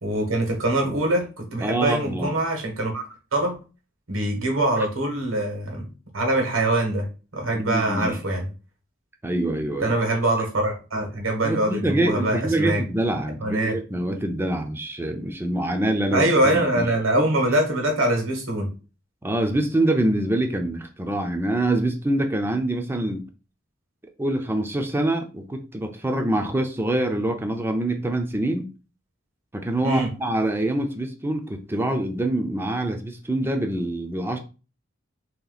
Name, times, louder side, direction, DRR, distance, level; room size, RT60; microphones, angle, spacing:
voice 1, 0.0-3.0 3.3-3.5 4.1-5.9 6.1-7.0 7.3-8.5 9.8-12.8 13.4-13.7 16.1-18.7 29.8-30.1, right 1 dB, 85° right, 2 dB, 1.4 m, -23 dB
voice 2, 1.6-2.3 7.5-8.2 9.2-9.9 11.4-16.9 17.2-17.3 19.2-23.2 24.2-28.7 29.5-34.4, right 1 dB, 10° right, 4 dB, 0.4 m, -25 dB
3.3 x 2.8 x 4.0 m, 0.33 s
head